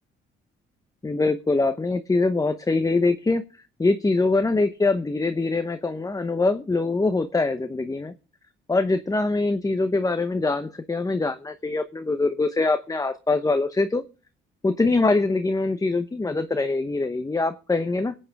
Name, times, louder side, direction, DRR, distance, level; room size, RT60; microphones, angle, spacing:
voice 1, 1.0-3.4 3.8-8.1 8.7-14.0 14.6-18.2, left 3 dB, 15° left, 9 dB, 0.9 m, -23 dB
23.5 x 8.8 x 3.5 m, 0.35 s
cardioid pair, 90°, 20 cm